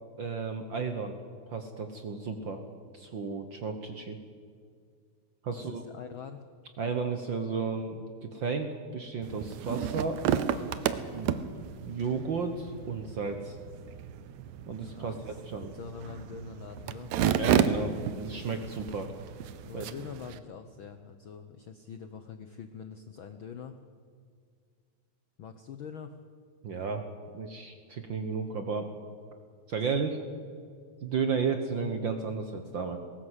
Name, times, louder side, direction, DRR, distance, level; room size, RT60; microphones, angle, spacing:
voice 1, 0.2-1.2 1.5-2.6 2.9-4.2 5.4-5.8 6.8-10.2 11.1-11.4 11.8-13.6 14.7-15.7 17.3-19.1 19.7-19.8 26.6-27.0 27.3-28.9 29.7-30.2 31.0-33.0, right 5 dB, 55° right, 7 dB, 1.4 m, -33 dB
voice 2, 5.5-6.4 14.9-15.4 15.7-17.1 19.6-23.8 25.4-26.1 29.8-30.0, left 7 dB, 70° left, 9 dB, 1.2 m, -44 dB
sound 1, 9.2-20.4, right 9 dB, 75° right, 2.1 m, -32 dB
20.0 x 17.5 x 8.2 m, 2.1 s
omnidirectional pair, 3.4 m